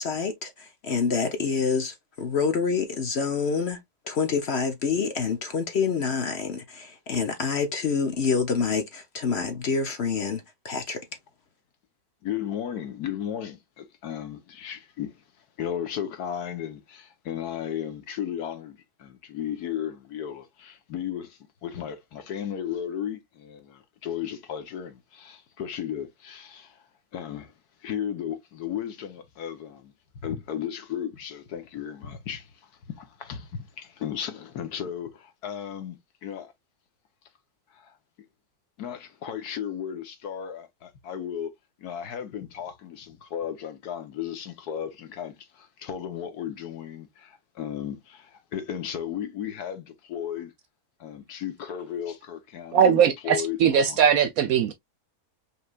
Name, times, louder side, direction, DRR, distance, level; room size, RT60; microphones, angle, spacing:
voice 1, 0.0-3.8 4.1-11.0, left 5 dB, 50° left, 0.9 m, -27 dB
voice 2, 12.2-15.2 15.6-26.8 27.1-27.5 27.8-29.9 30.2-36.5 37.7-38.0 38.8-41.5 41.8-50.5 51.0-54.0, left 9 dB, 80° left, 1.6 m, -35 dB
voice 3, 52.7-54.7, right 8 dB, 70° right, 1.0 m, -20 dB
5.5 x 3.3 x 2.4 m
omnidirectional pair, 1.6 m